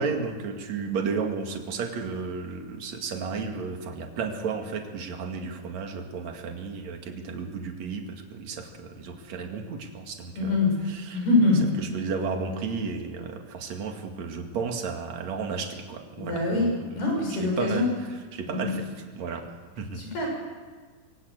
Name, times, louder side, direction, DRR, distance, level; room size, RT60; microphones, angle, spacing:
voice 1, 0.0-10.6 10.9-11.2 11.8-17.0 17.3-17.9 18.3-18.9 19.1-19.4 19.8-20.0, right 5 dB, 50° right, 4 dB, 3.0 m, -33 dB
voice 2, 10.4-10.8 11.1-11.6 16.2-16.7 17.0-17.9 18.5-18.7 20.0-20.3, left 3 dB, 70° left, 0 dB, 9.0 m, -24 dB
24.5 x 16.5 x 8.1 m, 1.5 s
omnidirectional pair, 4.7 m